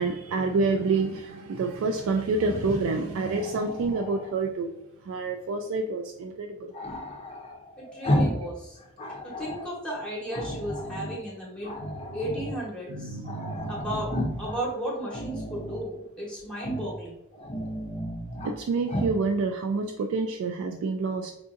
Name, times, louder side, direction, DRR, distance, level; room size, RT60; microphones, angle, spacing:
voice 1, 0.0-4.7 5.0-6.7 12.9-13.7 18.4-21.3, right 3 dB, 75° right, 4 dB, 0.3 m, -28 dB
Growling, 2.4-4.4 6.7-8.5 8.8-9.7 10.3-11.2 11.6-12.6 12.9-13.0 13.2-14.6 15.0-15.8 16.5-17.0 17.3-18.5 18.9-19.2, equal, 30° left, 0.5 m, -33 dB
voice 2, 7.8-8.8 9.2-11.7 12.1-13.2 13.7-17.1, right 1 dB, 5° left, -5 dB, 0.9 m, -34 dB
4.7 x 2.5 x 2.5 m, 0.88 s
head